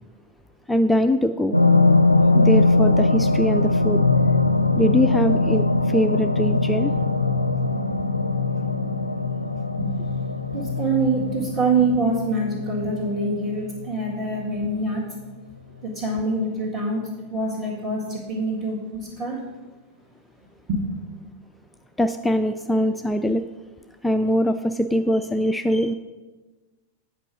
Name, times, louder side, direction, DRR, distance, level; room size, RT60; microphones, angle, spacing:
voice 1, 0.7-1.6 2.3-4.0 4.8-6.9 22.0-23.5 24.0-25.9, equal, 5° left, 7 dB, 0.3 m, -22 dB
sound 1, 1.5-14.5 14.9-15.0, left 3 dB, 90° left, 0.4 m, -21 dB
voice 2, 9.7-10.1 10.5-15.0 15.8-17.0 17.3-19.4 20.7-20.9, right 2 dB, 35° right, -5 dB, 2.0 m, -25 dB
8.3 x 4.9 x 6.4 m, 1.2 s
figure-of-eight pair, 90°, 0 cm